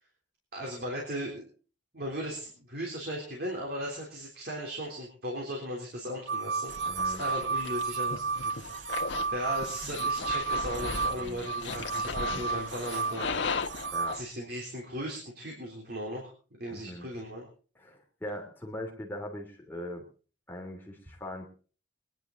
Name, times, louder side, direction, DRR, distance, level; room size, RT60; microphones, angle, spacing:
voice 1, 0.5-1.4 1.9-6.7 7.0-8.9 9.3-13.4 14.1-17.5, equal, 55° right, -1 dB, 3.6 m, -37 dB
sound 1, 6.3-14.2, right 4 dB, 80° right, 0.7 m, -32 dB
sound 2, 6.7-14.2, left 4 dB, 80° left, 1.4 m, -37 dB
voice 2, 6.9-7.2 9.2-9.3 11.2-11.5 13.9-14.2 16.7-17.1 17.7-20.1 20.5-21.5, left 1 dB, 10° left, 0 dB, 3.0 m, -41 dB
23.0 x 10.5 x 3.9 m, 0.38 s
head